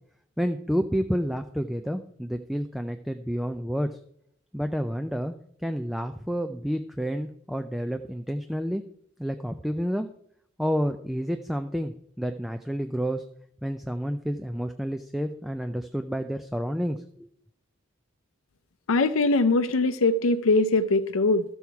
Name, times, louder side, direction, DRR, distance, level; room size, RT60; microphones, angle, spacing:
voice 1, 0.4-4.0 4.5-5.3 5.6-8.8 9.2-10.1 10.6-13.2 13.6-17.3, equal, ahead, 0.3 m, -29 dB
voice 2, 18.9-21.4, left 3 dB, 85° left, 0.5 m, -22 dB
13.0 x 7.1 x 4.6 m
head